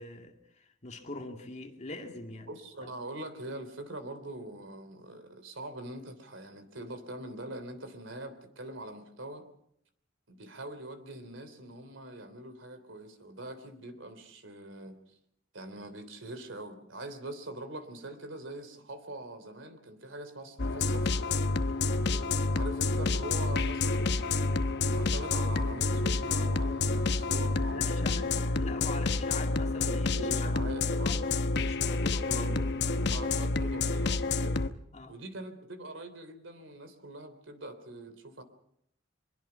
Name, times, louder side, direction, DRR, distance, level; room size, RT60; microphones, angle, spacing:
voice 1, 0.0-2.5 22.1-22.3 27.7-28.3 28.6-30.6 31.0-31.3 31.6-32.4 34.9-35.2, left 3 dB, 35° left, 2.3 m, -43 dB
voice 2, 2.5-9.5 10.3-15.0 15.5-21.2 22.5-28.6 29.8-31.2 32.2-34.6 35.1-38.4, right 1 dB, 85° right, 3.2 m, -43 dB
sound 1, 20.6-34.7, left 3 dB, 60° left, 0.9 m, -29 dB
24.0 x 22.0 x 5.7 m
head